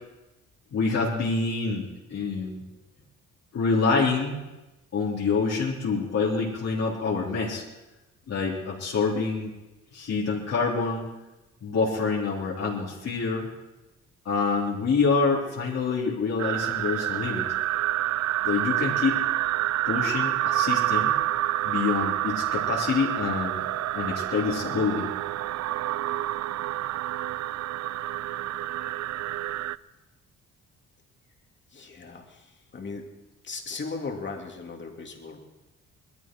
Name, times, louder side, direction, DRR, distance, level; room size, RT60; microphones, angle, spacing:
voice 1, 0.7-2.6 3.5-4.4 4.9-7.6 8.3-9.5 9.9-11.1 11.6-13.5 14.3-17.4 18.4-19.2 19.9-21.1 21.6-23.7 23.9-25.1, left 4 dB, 60° left, -4 dB, 3.6 m, -26 dB
sound 1, 16.4-29.8, right 14 dB, 60° right, 0.4 m, -28 dB
voice 2, 31.7-33.0 33.4-35.4, left 4 dB, 40° left, 2 dB, 2.8 m, -37 dB
20.0 x 14.0 x 4.6 m, 1.0 s
cardioid pair, 90°, 30 cm